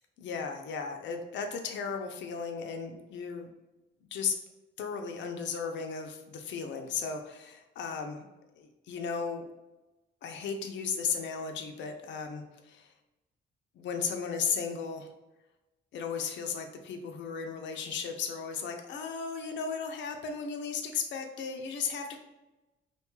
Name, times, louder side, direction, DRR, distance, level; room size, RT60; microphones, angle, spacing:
voice 1, 0.2-3.5 4.1-4.4 4.8-8.2 8.6-9.5 10.2-12.9 13.8-15.1 15.9-22.2, left 6 dB, 65° left, 4 dB, 0.5 m, -35 dB
2.7 x 2.2 x 3.0 m, 1.0 s
cardioid pair, 90°, 20 cm